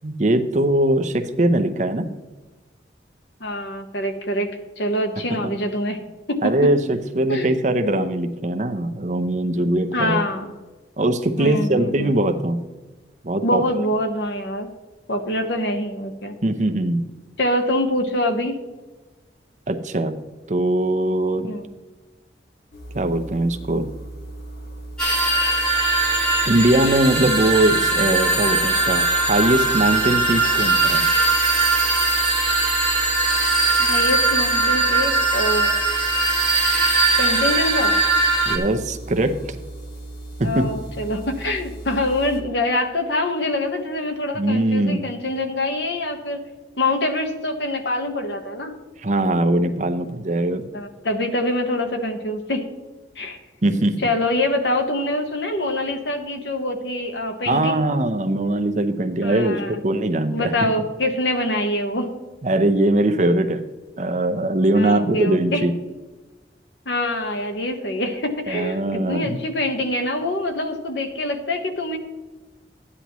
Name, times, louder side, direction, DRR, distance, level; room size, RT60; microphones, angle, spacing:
voice 1, 0.0-2.1 6.4-10.2 11.0-12.6 13.2-13.6 16.4-17.0 19.7-20.1 20.5-21.5 22.9-23.9 26.5-31.1 38.5-39.6 40.4-40.7 44.3-45.1 49.0-50.6 53.6-54.0 57.5-60.5 62.4-63.6 64.0-65.7 68.5-69.4, right 1 dB, 45° right, 7 dB, 0.7 m, -21 dB
voice 2, 3.4-6.7 7.3-7.6 9.9-10.5 11.4-12.2 13.4-14.7 15.1-16.3 17.4-18.6 21.4-21.7 33.8-35.7 37.2-38.0 40.4-46.4 46.8-48.8 50.7-52.7 53.2-53.4 54.0-57.8 59.2-59.7 60.3-62.1 64.7-65.6 66.8-72.0, left 1 dB, 80° left, 5 dB, 1.2 m, -25 dB
sound 1, 22.7-42.4, right 2 dB, 55° left, 1.9 m, -37 dB
sound 2, 25.0-38.6, right 3 dB, 5° left, 1.8 m, -20 dB
13.0 x 9.8 x 3.1 m, 1.2 s
head